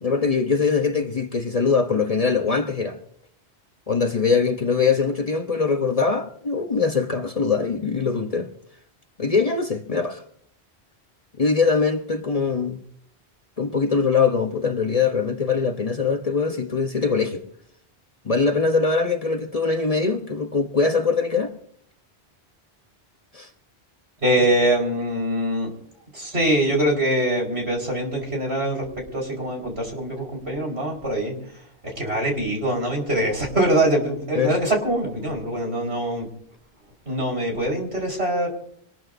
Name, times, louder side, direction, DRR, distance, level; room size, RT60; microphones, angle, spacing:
voice 1, 0.0-3.0 3.9-8.5 9.2-10.2 11.4-12.8 13.6-17.4 18.2-21.5 23.3-23.5 24.4-24.5 34.3-34.5, left 5 dB, 35° left, 1.0 m, -22 dB
voice 2, 24.2-25.7 26.1-28.8 29.1-31.3 31.8-36.3 37.1-38.5, right 1 dB, 75° right, 5.2 m, -23 dB
24.5 x 20.0 x 2.7 m
omnidirectional pair, 1.1 m